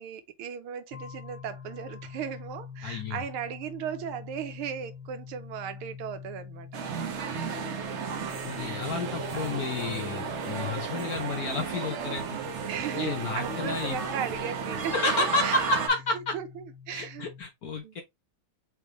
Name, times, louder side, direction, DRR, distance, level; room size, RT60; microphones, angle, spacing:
voice 1, 0.0-6.8 8.7-9.5 9.9-10.4 10.8-10.9 12.7-15.6 16.3-17.3 17.8-18.0, right 8 dB, 85° right, 1.7 m, -37 dB
sound 1, 0.9-17.4, left 6 dB, 80° left, 1.5 m, -45 dB
voice 2, 2.8-3.2 8.4-12.4 12.9-14.0 14.9-16.3 16.9-18.0, left 3 dB, 60° left, 1.0 m, -31 dB
sound 2, 6.7-15.9, right 6 dB, 60° right, 0.7 m, -33 dB
4.9 x 3.4 x 3.0 m
omnidirectional pair, 2.4 m